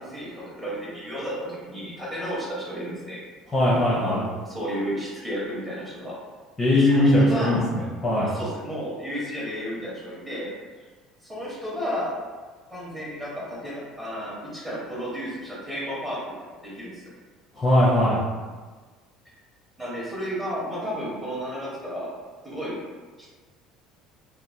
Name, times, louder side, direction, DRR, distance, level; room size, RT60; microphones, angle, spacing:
voice 1, 0.0-3.2 3.7-6.1 6.7-7.6 8.2-10.5 11.2-12.1 12.7-16.2 16.6-17.1 19.8-22.1 22.4-22.8, equal, 10° right, -7 dB, 0.9 m, -33 dB
voice 2, 3.5-4.2 6.6-8.3 17.5-18.2, left 1 dB, 15° left, -8 dB, 0.6 m, -20 dB
2.9 x 2.1 x 2.6 m, 1.4 s
cardioid pair, 140°, 0 cm